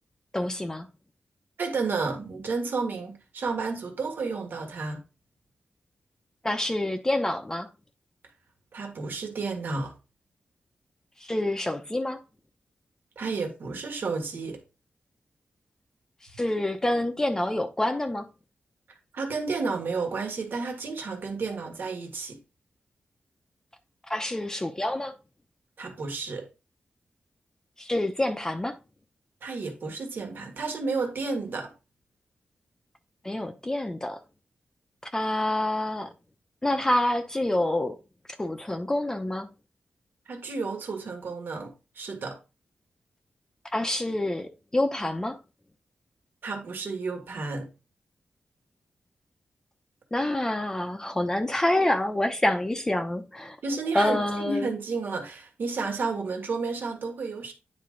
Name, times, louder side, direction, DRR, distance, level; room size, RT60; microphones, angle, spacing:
voice 1, 0.3-0.9 6.4-7.7 11.2-12.2 16.4-18.3 24.1-25.1 27.8-28.8 33.2-34.2 35.1-36.1 36.6-38.0 38.4-39.5 43.7-45.4 50.1-53.6 53.9-54.7, left 1 dB, 15° left, 0.7 m, -27 dB
voice 2, 1.6-5.0 8.7-9.9 13.1-14.6 19.1-22.4 25.8-26.5 29.4-31.7 40.3-42.4 46.4-47.7 53.6-57.5, right 4 dB, 65° right, 1.7 m, -31 dB
9.5 x 3.7 x 3.8 m
wide cardioid pair, 105°, 4 cm